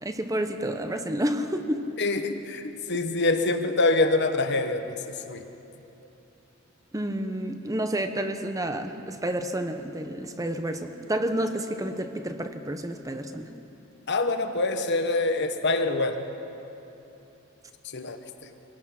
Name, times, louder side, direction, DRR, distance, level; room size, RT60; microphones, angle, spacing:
voice 1, 0.0-1.9 6.9-13.5, right 1 dB, 15° right, 7 dB, 0.8 m, -30 dB
voice 2, 2.0-5.4 14.1-16.3 17.9-18.5, left 2 dB, 55° left, 7 dB, 1.2 m, -25 dB
24.5 x 17.5 x 5.9 m, 2.9 s
head